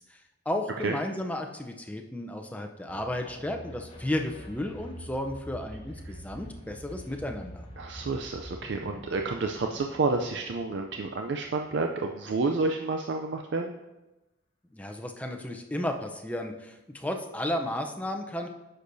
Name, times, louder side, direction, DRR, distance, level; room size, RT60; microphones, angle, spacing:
voice 1, 0.5-7.7 14.7-18.5, left 1 dB, 10° left, 3 dB, 0.5 m, -33 dB
sound 1, 2.9-12.0, equal, 30° left, 1.6 m, -46 dB
voice 2, 7.8-13.7, right 3 dB, 65° right, 3 dB, 0.4 m, -30 dB
9.9 x 6.6 x 2.6 m, 1.0 s
head